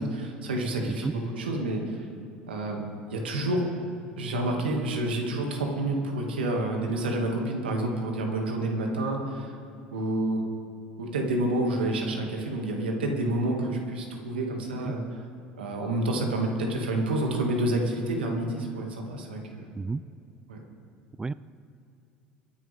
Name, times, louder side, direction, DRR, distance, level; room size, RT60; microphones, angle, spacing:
voice 1, 0.0-2.0 2.5-2.8 3.1-3.6 4.2-9.5 9.9-10.4 11.0-15.0 15.6-19.6 20.5-20.6, right 1 dB, 85° right, 1 dB, 2.3 m, -28 dB
voice 2, 1.0-1.1 14.8-14.9 19.8-20.0 21.2-21.3, right 3 dB, 15° right, 17 dB, 0.4 m, -30 dB
24.0 x 10.5 x 3.6 m, 2.5 s
hypercardioid pair, 70°, 5 cm